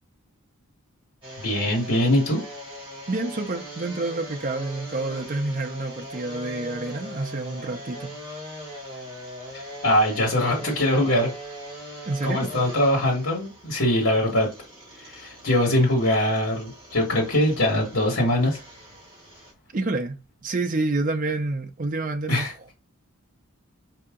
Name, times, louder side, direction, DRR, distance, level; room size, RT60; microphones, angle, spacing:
sound 1, 1.2-19.5, equal, 20° right, 2.1 m, -41 dB
voice 1, 1.4-2.4 9.5-11.3 12.2-14.5 15.0-18.6 22.3-22.5, left 1 dB, 65° left, 1.6 m, -22 dB
voice 2, 3.1-8.4 12.1-12.5 19.7-22.7, right 2 dB, 35° right, 0.5 m, -28 dB
4.8 x 2.8 x 3.6 m
head